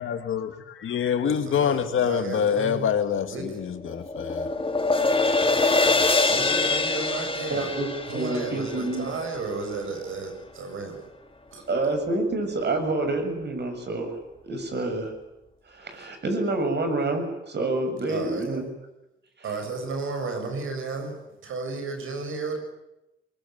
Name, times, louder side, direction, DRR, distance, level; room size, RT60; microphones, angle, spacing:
voice 1, 0.0-4.5, left 8 dB, 80° left, 2.3 m, -26 dB
voice 2, 1.2-2.9 3.3-3.6 6.3-7.7 8.1-11.1 11.5-11.7 18.1-18.5 19.4-22.6, right 4 dB, 90° right, 7.3 m, -33 dB
sound 1, 3.3-9.7, left 3 dB, 25° left, 3.0 m, -25 dB
voice 3, 7.5-9.2 11.7-14.2 14.4-15.1 15.7-18.7, right 2 dB, 55° right, 7.6 m, -28 dB
23.5 x 23.0 x 9.3 m
cardioid pair, 75°, 20 cm